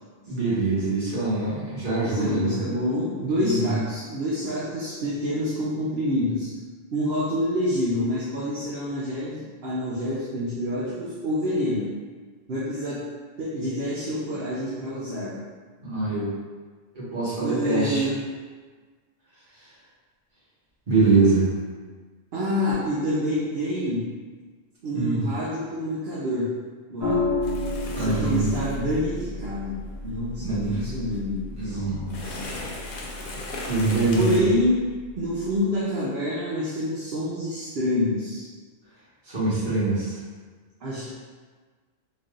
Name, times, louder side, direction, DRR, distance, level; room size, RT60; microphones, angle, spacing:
voice 1, 0.2-2.6 3.4-3.8 15.8-16.3 16.9-18.0 20.9-21.5 24.9-25.2 27.9-28.4 30.4-30.8 31.5-32.6 33.7-34.4 39.3-40.2, right 3 dB, 40° right, -10 dB, 1.5 m, -24 dB
voice 2, 2.0-6.5 6.9-11.9 12.5-13.0 13.4-15.4 17.4-18.2 22.3-24.0 24.8-26.5 26.9-27.2 28.0-29.8 30.0-31.8 34.1-34.8 35.2-38.5 40.8-41.1, left 1 dB, 60° right, -7 dB, 0.9 m, -27 dB
sound 1, 27.0-35.6, left 2 dB, 25° right, 1.6 m, -33 dB
sound 2, 27.4-34.4, left 2 dB, 55° left, 0.7 m, -39 dB
4.0 x 3.3 x 2.4 m, 1.5 s
omnidirectional pair, 1.2 m